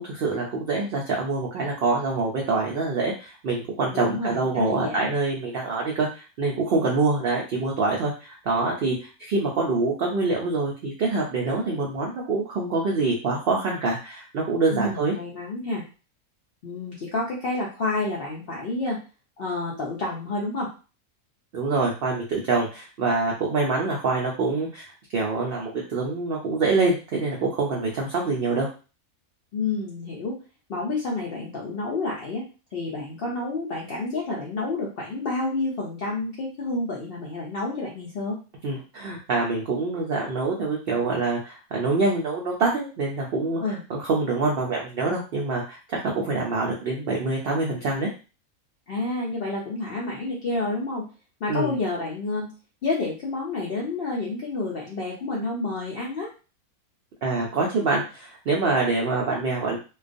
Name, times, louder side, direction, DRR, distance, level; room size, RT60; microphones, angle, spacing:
voice 1, 0.0-15.1 21.5-28.7 38.6-43.6 43.9-48.1 51.5-51.7 57.2-59.8, right 3 dB, 80° right, -2 dB, 0.5 m, -25 dB
voice 2, 3.9-5.1 14.7-15.8 16.6-19.0 19.4-20.7 29.5-30.4 30.7-32.4 32.7-38.4 43.6-43.8 48.9-51.0 51.4-52.5 52.8-56.3, left 3 dB, 70° left, -3 dB, 0.5 m, -29 dB
2.3 x 2.3 x 2.5 m, 0.34 s
omnidirectional pair, 1.6 m